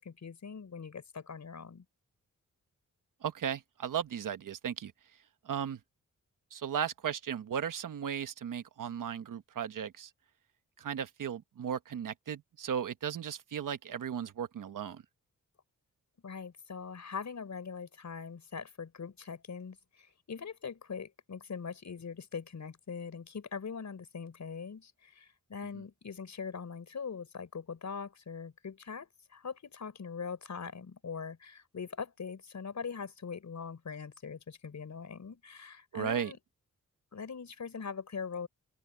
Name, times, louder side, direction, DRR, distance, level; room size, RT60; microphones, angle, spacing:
voice 1, 0.0-1.9 16.2-36.4 37.1-38.5, left 6 dB, 60° left, 5.3 m, -42 dB
voice 2, 3.2-4.9 5.4-5.8 6.5-10.1 10.8-15.0 35.9-36.3, right 8 dB, 85° right, 1.2 m, -36 dB
open air
wide cardioid pair, 95°, 31 cm